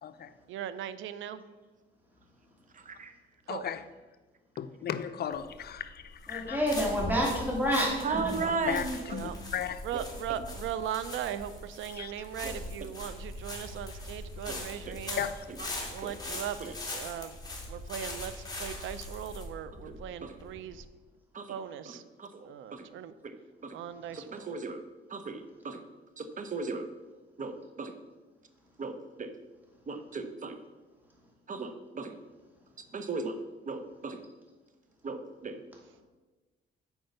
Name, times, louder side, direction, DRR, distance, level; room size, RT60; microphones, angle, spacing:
voice 1, 0.5-1.4 3.5-3.7 9.0-9.3 9.8-15.2 15.9-17.3 17.7-18.3 18.6-20.8 21.5-22.0 22.5-23.1 23.7-24.5, right 10 dB, 80° right, 0.6 m, -38 dB
voice 2, 3.5-3.8 4.6-6.6 8.7-9.8 11.9-12.3 15.2-15.5, left 8 dB, 50° left, 0.6 m, -36 dB
sound 1, 5.3-20.8, left 2 dB, 20° left, 2.3 m, -41 dB
voice 3, 6.3-8.5, equal, 10° right, 2.6 m, -28 dB
voice 4, 8.0-9.0 12.4-12.6 14.5-14.6 16.0-16.1 20.2-20.3 21.4-21.5 24.1-24.8 25.1-25.8 26.2-26.9 27.4-27.9 28.8-29.3 29.9-30.6 31.5-31.7 32.0-32.1 32.9-33.3 33.7-34.2 35.0-35.6, right 4 dB, 40° right, 0.9 m, -35 dB
8.1 x 4.6 x 6.6 m
cardioid pair, 90°, 20 cm